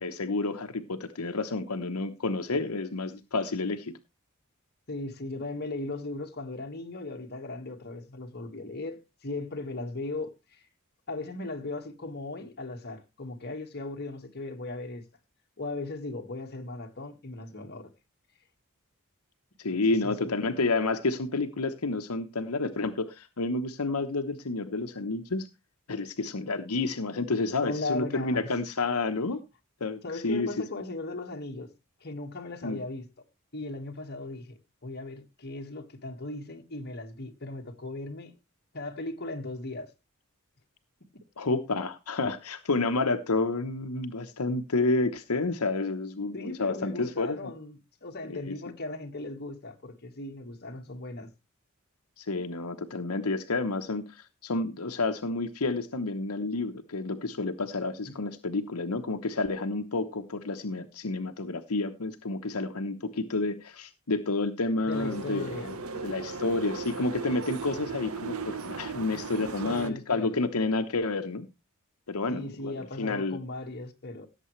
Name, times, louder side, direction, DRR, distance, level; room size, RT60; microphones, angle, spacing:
voice 1, 0.0-4.0 19.6-25.5 25.9-29.4 29.8-30.5 32.6-32.8 41.4-47.5 48.2-48.5 52.2-65.7 66.0-71.5 72.1-73.4, left 3 dB, 80° left, 1.0 m, -30 dB
voice 2, 4.9-10.6 11.1-15.0 15.6-17.9 20.0-20.4 27.6-28.5 30.0-31.7 32.0-33.0 33.5-38.3 38.7-39.9 46.3-51.3 58.1-58.2 64.9-65.8 69.4-70.4 72.3-74.3, left 2 dB, 45° left, 1.7 m, -37 dB
sound 1, 64.9-69.9, right 4 dB, 75° right, 1.0 m, -37 dB
17.0 x 7.6 x 3.2 m
head